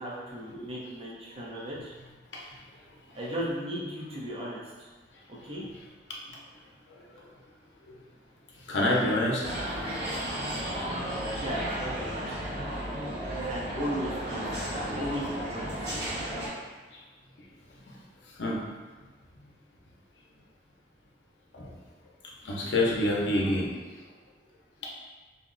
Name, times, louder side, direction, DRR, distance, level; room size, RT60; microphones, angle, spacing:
voice 1, 0.0-1.9 3.1-4.9 5.3-5.6 11.3-12.3 13.5-14.4 14.7-15.9, equal, 30° right, -6 dB, 0.7 m, -36 dB
voice 2, 8.7-9.7 10.1-10.2 12.2-12.3 12.7-12.9 16.9-17.0 18.4-18.6 21.5-21.7 22.4-24.0 24.8-24.9, left 1 dB, 85° left, -3 dB, 0.6 m, -28 dB
sound 1, 9.4-16.5, right 1 dB, 75° right, 1.2 m, -33 dB
2.8 x 2.0 x 3.7 m, 1.3 s
head